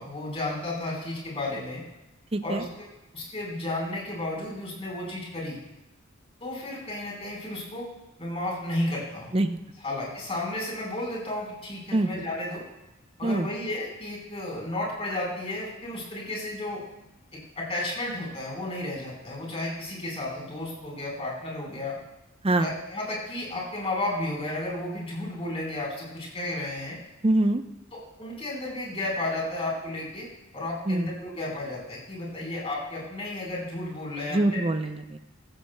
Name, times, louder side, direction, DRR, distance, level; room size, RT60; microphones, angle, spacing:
voice 1, 0.0-1.8 2.4-2.6 3.1-5.6 6.4-7.9 8.2-9.3 9.8-12.6 13.2-16.9 17.3-22.0 22.6-27.0 27.9-30.3 30.5-34.6, left 1 dB, 30° left, -3 dB, 4.3 m, -33 dB
voice 2, 2.3-2.6 9.3-9.6 11.9-12.1 13.2-13.5 22.4-22.7 27.2-27.6 30.9-31.1 34.3-35.2, right 1 dB, 30° right, 8 dB, 0.6 m, -24 dB
15.0 x 14.5 x 2.2 m, 0.98 s
head